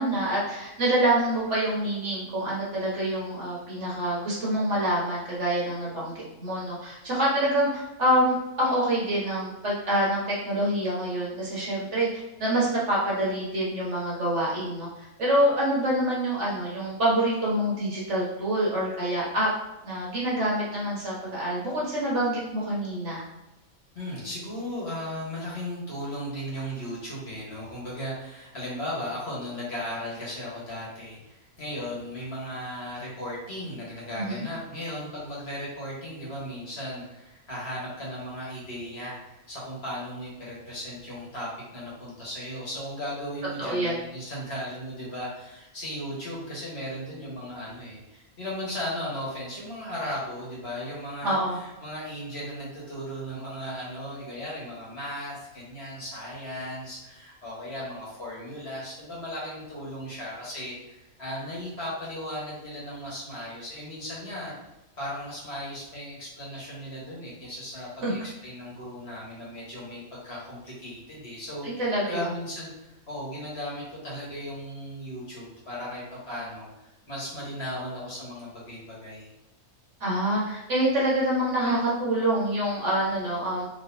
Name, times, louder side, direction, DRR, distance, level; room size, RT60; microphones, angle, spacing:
voice 1, 0.0-6.1 6.4-14.9 15.2-19.5 19.8-23.2 34.2-34.5 43.6-43.9 51.2-51.6 68.0-68.1 71.6-72.3 80.0-83.7, right 1 dB, 55° right, -6 dB, 1.5 m, -26 dB
voice 2, 23.9-64.5 65.0-79.3, equal, 45° left, -6 dB, 1.4 m, -36 dB
4.1 x 3.3 x 2.6 m, 0.98 s
omnidirectional pair, 1.5 m